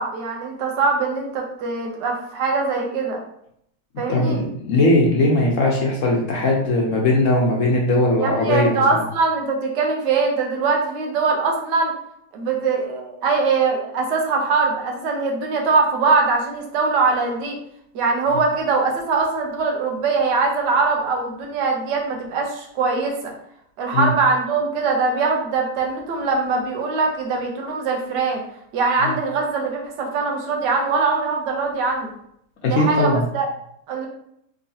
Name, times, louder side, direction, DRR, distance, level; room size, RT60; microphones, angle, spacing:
voice 1, 0.0-3.2 4.0-4.4 8.2-11.9 12.3-17.6 17.9-23.3 23.8-28.4 28.7-32.1 32.6-33.4 33.9-34.1, right 4 dB, 90° right, 1 dB, 1.4 m, -22 dB
voice 2, 4.1-9.0 23.9-24.1 29.0-29.1 32.6-33.2, left 2 dB, 60° left, -1 dB, 0.9 m, -19 dB
3.6 x 3.1 x 2.7 m, 0.73 s
omnidirectional pair, 1.8 m